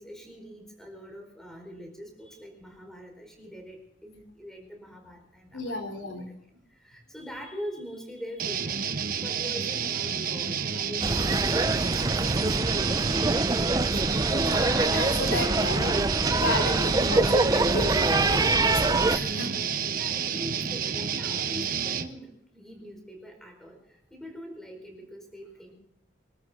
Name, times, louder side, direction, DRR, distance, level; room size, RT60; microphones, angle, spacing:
voice 1, 0.0-6.4 6.8-14.3 19.7-25.7, equal, ahead, 3 dB, 4.7 m, -43 dB
voice 2, 5.5-6.3 14.3-19.6, left 1 dB, 80° left, 3 dB, 3.7 m, -33 dB
sound 1, 8.4-22.1, right 7 dB, 50° right, 1.1 m, -30 dB
sound 2, 11.0-19.2, right 2 dB, 20° right, 0.6 m, -25 dB
25.0 x 13.5 x 3.8 m, 0.72 s
head